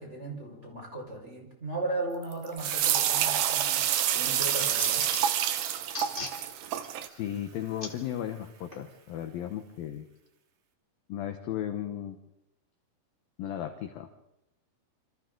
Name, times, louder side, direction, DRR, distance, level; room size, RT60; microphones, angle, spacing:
voice 1, 0.0-5.0, right 2 dB, 15° right, -1 dB, 4.8 m, -36 dB
Fill (with liquid), 2.1-9.5, right 5 dB, 60° right, 3.2 m, -45 dB
sound 1, 2.6-7.1, right 10 dB, 90° right, 1.9 m, -27 dB
sound 2, 3.3-3.7 4.1-5.4 5.8-6.4 6.8-6.9 7.8-7.9 8.7-8.8, left 2 dB, 25° left, 1.0 m, -38 dB
voice 2, 7.1-10.0 11.1-12.2 13.4-14.1, left 11 dB, 70° left, 7 dB, 2.2 m, -35 dB
27.5 x 27.5 x 3.9 m, 0.89 s
omnidirectional pair, 5.5 m